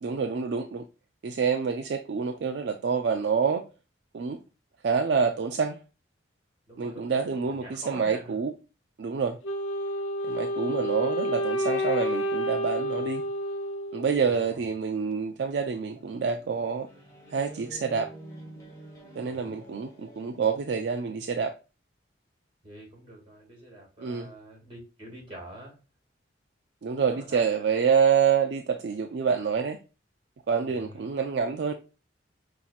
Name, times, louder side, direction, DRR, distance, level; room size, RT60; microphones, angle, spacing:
voice 1, 0.0-0.8 1.2-3.6 4.1-4.4 4.8-5.8 6.8-8.5 9.0-9.4 10.3-13.2 13.9-16.9 17.3-18.1 19.2-21.5 24.0-24.3 26.8-29.8 30.5-31.7, right 6 dB, 60° right, 0.4 m, -27 dB
voice 2, 6.7-8.4 13.1-13.3 14.2-14.7 19.2-19.6 22.6-25.8 27.0-27.4 27.7-27.8 30.7-31.1, right 1 dB, 25° right, 2.2 m, -46 dB
Wind instrument woodwind instrument, 9.4-14.5, equal, 85° left, 0.5 m, -30 dB
sound 1, 15.9-21.1, right 1 dB, 15° left, 1.2 m, -48 dB
5.8 x 2.7 x 2.4 m
head